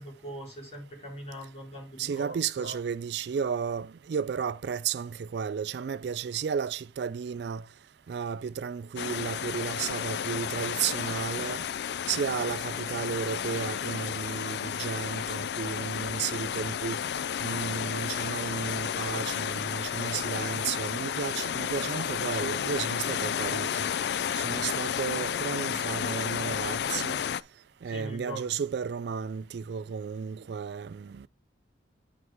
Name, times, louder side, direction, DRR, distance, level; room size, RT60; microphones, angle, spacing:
voice 1, 0.0-2.8 27.8-28.5, right 1 dB, 35° left, 4.2 m, -41 dB
voice 2, 2.0-7.6 8.1-11.6 12.1-17.0 17.4-23.9 24.3-27.2 27.8-31.3, right 6 dB, 65° right, 0.3 m, -33 dB
sound 1, 9.0-27.4, left 8 dB, 60° left, 0.3 m, -32 dB
9.5 x 4.8 x 3.5 m
head